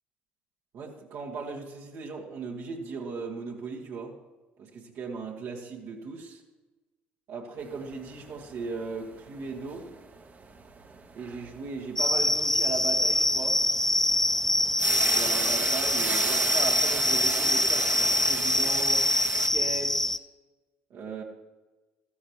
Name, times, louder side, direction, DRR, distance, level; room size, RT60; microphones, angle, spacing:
voice 1, 0.7-4.2 4.6-6.4 7.3-9.9 11.2-13.6 14.8-19.1 19.5-20.2 20.9-21.2, right 4 dB, 60° right, -2 dB, 1.8 m, -37 dB
sound 1, 7.6-19.5, right 4 dB, 30° right, 1.3 m, -34 dB
sound 2, 12.0-20.2, left 1 dB, 5° left, 0.5 m, -25 dB
14.0 x 14.0 x 3.1 m, 1.2 s
hypercardioid pair, 55°, 6 cm